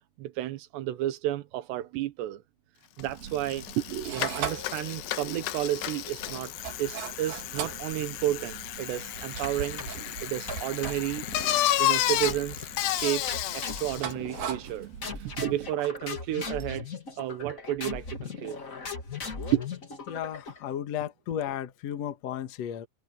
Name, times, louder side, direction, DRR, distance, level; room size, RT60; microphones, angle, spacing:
voice 1, 0.2-2.4 3.0-6.5 6.8-11.3 11.8-13.3 13.5-14.9 15.1-16.9 17.2-18.6 19.5-19.6, right 13 dB, 90° right, 3.3 m, -32 dB
Bicycle, 3.0-3.1 3.3-14.1, left 14 dB, 90° left, 3.2 m, -32 dB
sound 1, 3.0-15.7, right 8 dB, 65° right, 4.4 m, -41 dB
sound 2, 9.4-10.1 10.5-11.6 12.2-12.8 13.3-14.7 15.0-20.7, left 4 dB, 30° left, 1.5 m, -39 dB
voice 2, 20.1-22.9, left 10 dB, 60° left, 1.9 m, -34 dB
omnidirectional pair, 4.8 m